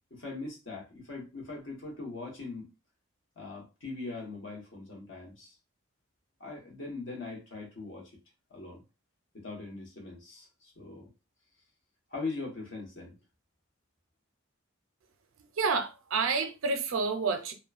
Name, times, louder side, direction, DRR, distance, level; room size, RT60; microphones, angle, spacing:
voice 1, 0.1-2.7 3.4-5.6 6.4-8.1 8.5-8.8 9.3-11.1 12.1-13.2, left 3 dB, 65° left, 1.1 m, -41 dB
voice 2, 15.5-17.5, right 4 dB, 75° right, 0.5 m, -29 dB
2.9 x 2.1 x 2.4 m
head